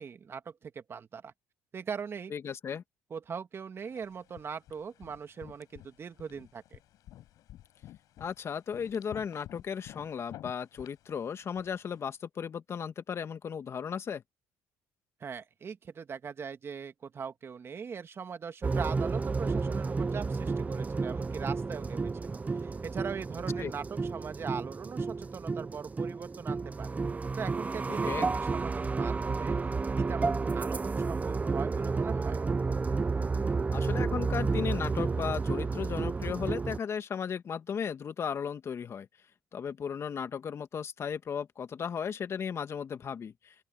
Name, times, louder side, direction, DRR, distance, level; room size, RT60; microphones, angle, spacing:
voice 1, 0.0-1.3 1.7-2.3 3.1-6.8 15.2-27.0 27.4-29.6 30.0-32.4, right 6 dB, 40° right, 2.1 m, -41 dB
voice 2, 2.3-2.8 8.2-14.2 23.6-23.7 27.9-28.3 33.7-39.1 39.5-43.5, left 7 dB, 45° left, 2.1 m, -35 dB
sound 1, 3.8-12.0, left 13 dB, 70° left, 6.3 m, -52 dB
sound 2, 18.6-36.8, right 4 dB, 25° right, 0.9 m, -31 dB
open air
supercardioid pair, 80°, 6 cm